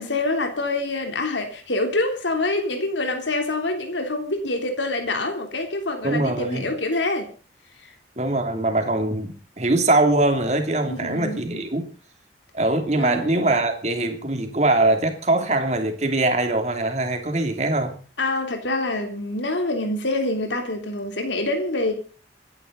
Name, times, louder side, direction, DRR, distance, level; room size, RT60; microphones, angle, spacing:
voice 1, 0.0-7.3 10.9-11.6 13.0-13.3 18.2-21.9, left 2 dB, 80° left, 3.3 m, -26 dB
voice 2, 6.0-6.7 8.2-11.8 12.5-17.9, right 2 dB, 35° right, 2.9 m, -22 dB
27.0 x 10.5 x 4.0 m
head